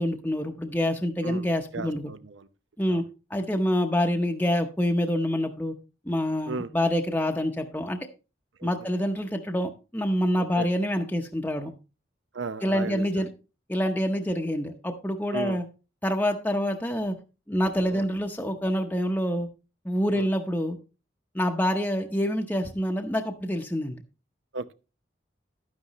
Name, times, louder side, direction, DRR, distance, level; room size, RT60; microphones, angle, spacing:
voice 1, 0.0-2.1 2.8-3.0 3.3-5.7 6.1-8.0 8.6-11.7 12.6-13.3 13.7-15.6 16.0-17.2 17.5-19.5 19.8-20.8 21.3-24.0, equal, 10° left, 0.7 m, -26 dB
voice 2, 1.7-2.5 2.9-3.0 6.5-6.7 8.6-8.7 10.4-10.7 12.3-13.3 15.3-15.6 17.9-18.1 20.1-20.3 24.5-24.7, right 3 dB, 80° right, 0.7 m, -36 dB
11.5 x 9.5 x 3.0 m
head